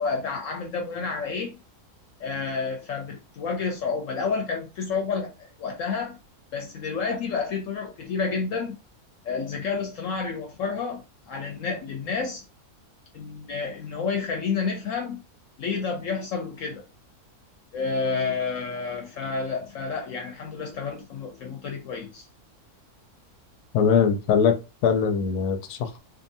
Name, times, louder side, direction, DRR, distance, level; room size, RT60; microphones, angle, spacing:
voice 1, 0.0-1.6 2.2-5.3 5.6-6.2 6.5-8.8 9.2-11.0 11.3-12.4 13.1-15.2 15.6-16.8 17.7-22.2, left 5 dB, 70° left, 0.9 m, -30 dB
voice 2, 23.7-26.0, left 6 dB, 85° left, 1.1 m, -22 dB
2.6 x 2.5 x 2.6 m
omnidirectional pair, 1.6 m